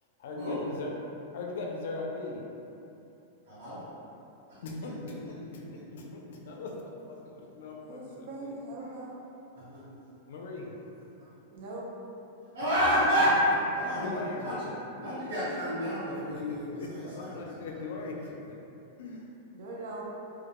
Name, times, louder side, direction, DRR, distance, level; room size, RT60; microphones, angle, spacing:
voice 1, 0.2-0.9 1.3-2.4 4.6-8.5 10.3-10.7 13.0-13.1 13.9-14.6 16.2-18.6 19.0-19.3, left 3 dB, 70° left, 0 dB, 0.4 m, -40 dB
voice 2, 3.5-3.8 5.0-5.3 9.7-9.8 12.5-13.4 13.7-14.7 15.0-17.4, equal, 90° right, -13 dB, 0.9 m, -30 dB
voice 3, 6.4-6.9 7.8-9.3 10.1-10.5 11.5-11.8 19.5-20.1, right 2 dB, 50° right, -4 dB, 0.5 m, -42 dB
2.2 x 2.1 x 2.9 m, 2.9 s
supercardioid pair, 160°, 0 cm